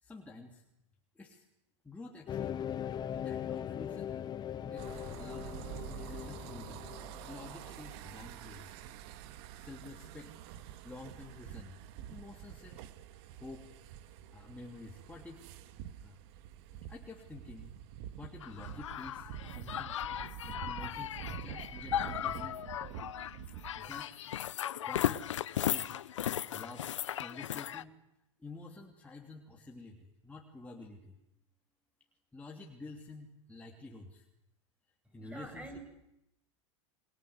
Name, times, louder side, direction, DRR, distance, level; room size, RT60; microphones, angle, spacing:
voice 1, 0.0-0.6 1.1-1.4 1.8-4.1 4.6-6.9 7.3-8.8 9.5-11.8 12.1-12.9 13.4-13.7 14.3-15.4 16.0-16.2 16.9-17.8 18.2-22.6 23.8-24.2 24.5-25.3 25.7-26.0 26.5-28.0 28.4-31.1 32.3-34.3 35.1-35.8, left 3 dB, 10° left, -1 dB, 3.1 m, -50 dB
sound 1, 2.3-7.8, left 9 dB, 25° left, 1.0 m, -40 dB
sound 2, 4.8-24.0, right 11 dB, 60° right, 2.0 m, -47 dB
sound 3, 18.4-27.8, left 11 dB, 85° left, 1.0 m, -37 dB
voice 2, 35.2-35.8, right 2 dB, 10° right, 6 dB, 7.4 m, -46 dB
29.0 x 23.0 x 8.1 m, 0.88 s
hypercardioid pair, 110°, 15 cm